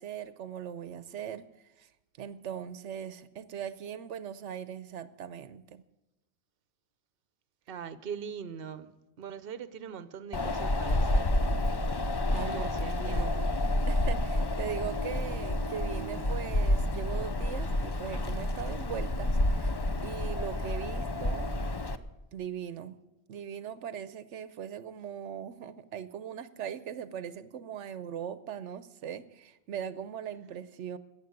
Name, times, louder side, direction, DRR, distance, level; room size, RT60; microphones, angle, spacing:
voice 1, 0.0-1.9 2.2-5.8 12.0-13.3 13.9-19.7 20.0-21.5 22.3-23.0 23.3-31.0, right 9 dB, 85° right, 1.0 m, -40 dB
voice 2, 7.7-8.9 9.2-11.4 12.5-13.5, right 7 dB, 55° right, 1.0 m, -41 dB
Wind, 10.3-22.0, left 1 dB, 30° left, 0.6 m, -29 dB
14.5 x 9.0 x 9.5 m
omnidirectional pair, 1.2 m